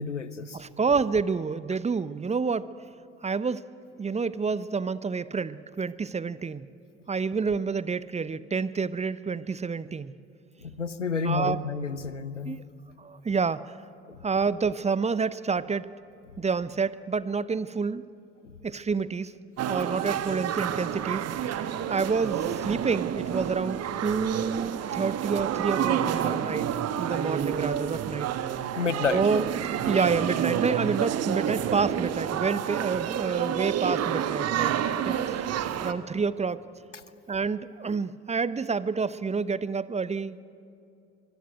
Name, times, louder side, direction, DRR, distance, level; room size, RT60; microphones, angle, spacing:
voice 1, 0.0-0.6 10.6-12.6 14.1-14.2 28.8-29.2, left 5 dB, 90° left, 15 dB, 0.8 m, -30 dB
voice 2, 0.5-2.7 3.2-3.6 4.0-6.7 7.1-10.2 11.2-11.6 12.4-12.6 13.0-13.8 14.2-15.9 16.4-18.0 18.6-19.3 19.7-21.5 21.9-26.7 27.0-28.3 29.1-29.4 29.9-34.7 35.0-35.4 35.8-36.6 37.3-40.4, right 5 dB, 20° right, 17 dB, 0.8 m, -28 dB
sound 1, 19.6-35.9, right 9 dB, 45° right, 1.3 m, -29 dB
24.5 x 22.5 x 9.3 m, 2.6 s
figure-of-eight pair, 50°, 35 cm